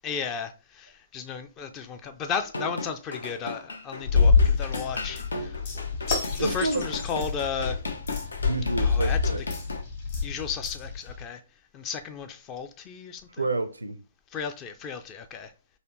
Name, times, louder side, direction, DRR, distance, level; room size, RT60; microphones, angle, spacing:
voice 1, 0.0-6.0 6.3-7.8 8.8-9.4 10.2-11.4 11.7-13.2 14.3-15.5, left 6 dB, 25° left, 0.4 m, -34 dB
sound 1, 2.4-9.8, left 2 dB, 70° left, 0.6 m, -36 dB
sound 2, 4.0-11.2, left 5 dB, 45° left, 1.7 m, -26 dB
voice 2, 6.4-6.8 8.4-9.4 13.3-14.0, right 2 dB, 75° right, 0.5 m, -29 dB
4.1 x 2.6 x 2.9 m
figure-of-eight pair, 125°, 0 cm